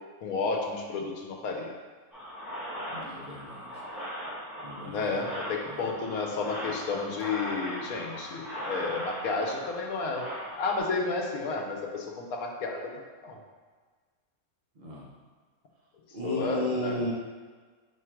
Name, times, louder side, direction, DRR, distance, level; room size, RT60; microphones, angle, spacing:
voice 1, 0.2-1.7 4.8-10.3 10.5-12.9 13.2-13.4 16.2-17.0, left 4 dB, 80° left, 1 dB, 1.1 m, -31 dB
sound 1, 2.1-10.8, equal, ahead, 1.0 m, -39 dB
voice 2, 2.9-3.7 4.6-5.2 5.7-5.8 14.8-15.1 16.1-17.1, left 1 dB, 45° right, -4 dB, 0.6 m, -34 dB
5.0 x 2.4 x 4.4 m, 1.5 s
omnidirectional pair, 1.5 m